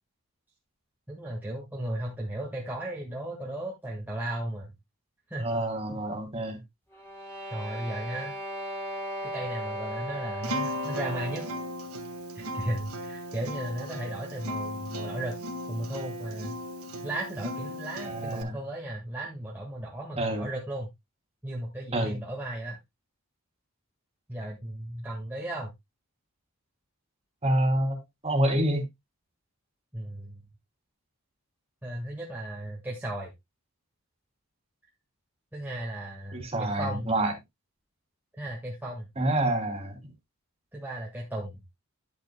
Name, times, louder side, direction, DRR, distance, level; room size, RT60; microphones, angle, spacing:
voice 1, 1.1-4.7 5.3-5.5 7.5-8.4 9.2-11.4 12.3-15.3 15.7-16.6 17.0-20.9 21.4-22.8 24.3-25.7 29.9-30.4 31.8-33.3 35.5-37.1 38.4-39.1 40.7-41.6, right 1 dB, 10° right, 1.7 m, -35 dB
voice 2, 5.4-6.6 18.0-18.6 20.2-20.5 21.9-22.2 27.4-28.0 28.2-28.8 36.3-37.3 39.2-40.1, right 1 dB, 25° right, 2.9 m, -27 dB
sound 1, 6.9-11.7, equal, 10° left, 3.5 m, -37 dB
Acoustic guitar, 10.4-18.4, equal, 80° right, 1.6 m, -36 dB
10.5 x 8.4 x 2.2 m
head